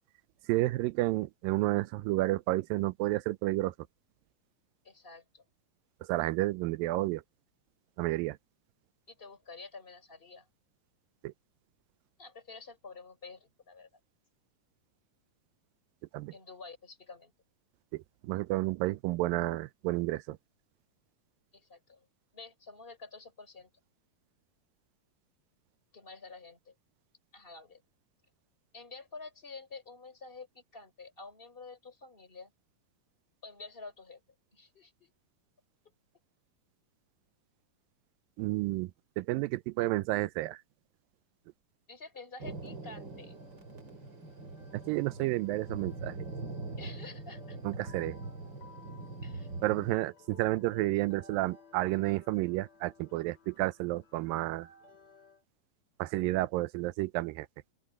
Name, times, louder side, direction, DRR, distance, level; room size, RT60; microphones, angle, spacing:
voice 1, 0.5-3.7 6.1-7.2 8.0-8.4 11.2-11.3 16.1-16.3 17.9-20.4 38.4-38.9 39.2-40.6 44.7-46.1 47.6-48.2 49.6-54.7 56.0-57.5, right 18 dB, 85° right, 2.3 m, -31 dB
voice 2, 4.8-5.4 9.1-10.5 12.2-13.9 16.3-17.3 21.5-22.1 22.3-23.7 25.9-26.7 27.3-27.8 28.7-32.5 33.4-34.2 34.5-35.1 41.9-43.3 46.8-47.6 49.2-49.5, left 3 dB, 15° left, 4.3 m, -49 dB
Thunder, 42.4-50.0, right 3 dB, 30° right, 3.8 m, -42 dB
sound 1, 43.1-55.4, left 4 dB, 70° left, 6.8 m, -58 dB
open air
omnidirectional pair, 4.0 m